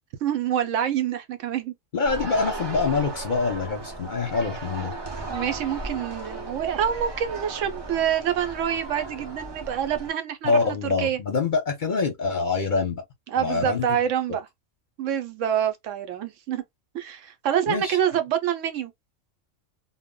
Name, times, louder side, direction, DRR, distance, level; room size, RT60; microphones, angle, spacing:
voice 1, 0.2-1.7 5.3-11.2 13.3-14.5 15.0-16.6 16.9-18.9, right 9 dB, 75° right, 0.9 m, -26 dB
voice 2, 1.9-4.9 10.4-13.0 13.3-13.9 17.7-18.0, left 4 dB, 50° left, 0.7 m, -25 dB
sound 1, 2.0-10.1, right 2 dB, 35° right, 0.4 m, -35 dB
2.1 x 2.0 x 3.6 m
omnidirectional pair, 1.3 m